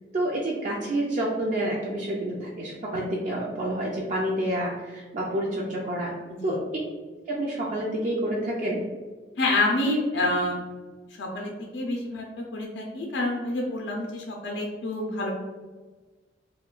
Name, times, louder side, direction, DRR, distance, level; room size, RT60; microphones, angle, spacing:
voice 1, 0.1-6.1 6.4-6.6 7.3-8.9, right 1 dB, 45° right, -4 dB, 0.4 m, -28 dB
voice 2, 6.3-6.6 9.4-10.6 11.2-12.3 12.5-15.3, left 2 dB, 75° left, 0 dB, 0.5 m, -27 dB
2.3 x 2.2 x 3.6 m, 1.3 s
head